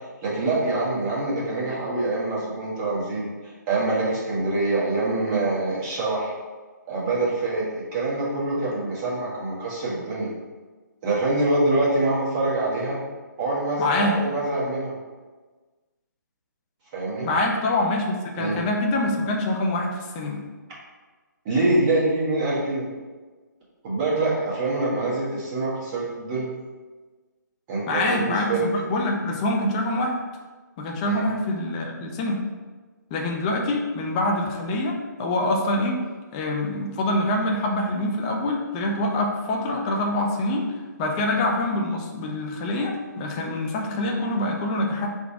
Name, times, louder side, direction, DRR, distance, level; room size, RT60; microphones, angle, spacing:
voice 1, 0.2-6.3 6.9-7.7 7.9-10.3 11.0-13.0 13.4-14.9 16.9-17.3 18.4-18.6 21.4-22.8 23.8-26.5 27.7-28.6 31.1-31.2, right 2 dB, 25° right, -6 dB, 1.2 m, -25 dB
voice 2, 13.8-14.2 17.2-20.4 27.9-30.2 30.8-32.4 33.1-34.9 35.2-36.0 36.3-40.7 41.0-45.1, left 1 dB, 20° left, 1 dB, 0.5 m, -25 dB
3.8 x 2.3 x 4.6 m, 1.3 s
figure-of-eight pair, 140°, 10 cm